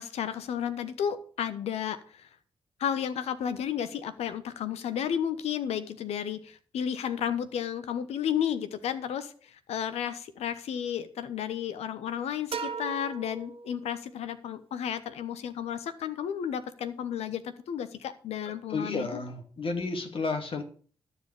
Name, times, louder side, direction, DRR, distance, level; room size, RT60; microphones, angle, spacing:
voice 1, 0.0-2.3 2.8-19.1, left 9 dB, 75° left, 13 dB, 1.1 m, -32 dB
sound 1, 12.5-14.3, right 6 dB, 60° right, 1.4 m, -38 dB
voice 2, 18.5-20.6, left 3 dB, 55° left, 6 dB, 2.6 m, -32 dB
13.0 x 4.9 x 8.3 m, 0.44 s
hypercardioid pair, 40°, 11 cm